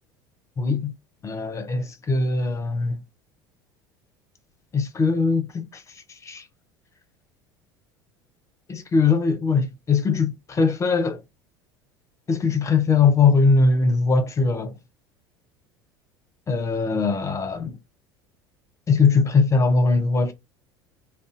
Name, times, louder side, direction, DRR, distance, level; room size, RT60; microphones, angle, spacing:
voice 1, 0.6-0.9 1.2-3.0 4.7-5.8 6.2-6.4 8.7-11.2 12.3-14.7 16.5-17.7 18.9-20.3, left 4 dB, 25° left, 0.7 m, -21 dB
2.5 x 2.2 x 3.9 m
figure-of-eight pair, 70°, 12 cm